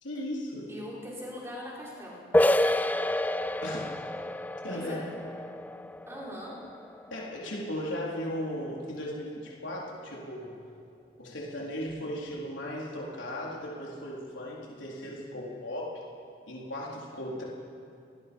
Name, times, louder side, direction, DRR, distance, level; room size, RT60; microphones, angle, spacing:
voice 1, 0.0-0.7 3.6-3.8 4.6-5.0 7.1-10.5 11.2-16.0 16.5-17.4, equal, 80° left, -4 dB, 4.1 m, -36 dB
voice 2, 0.7-2.2 4.7-5.0 6.1-6.6, equal, 15° right, -5 dB, 4.7 m, -41 dB
sound 1, 2.3-7.8, left 1 dB, 10° left, 0.4 m, -29 dB
29.0 x 19.5 x 5.5 m, 2.5 s
head